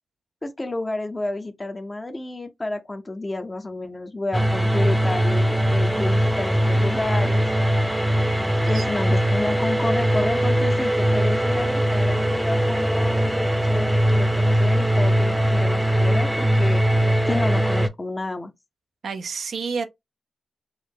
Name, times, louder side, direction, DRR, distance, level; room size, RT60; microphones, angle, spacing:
voice 1, 0.4-7.5 8.7-16.8 17.3-18.5, left 2 dB, 30° left, 0.7 m, -30 dB
sound 1, 4.3-17.9, equal, 10° right, 0.7 m, -21 dB
voice 2, 8.4-8.8 19.0-19.9, right 5 dB, 80° right, 0.5 m, -30 dB
4.7 x 2.0 x 3.6 m
cardioid pair, 50°, 0 cm